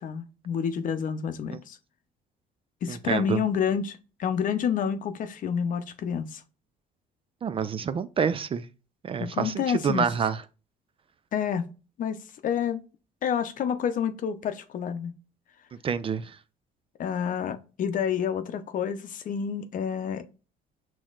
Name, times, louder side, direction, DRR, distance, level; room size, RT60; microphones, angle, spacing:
voice 1, 0.0-1.8 2.8-6.4 9.2-10.1 11.3-11.7 12.0-12.2 12.4-12.8 13.2-15.1 17.0-20.2, left 7 dB, 50° left, 0.7 m, -29 dB
voice 2, 2.9-3.4 7.4-8.7 9.0-10.4 15.8-16.4, right 7 dB, 35° right, 0.4 m, -27 dB
6.1 x 3.0 x 2.4 m
cardioid pair, 110°, 17 cm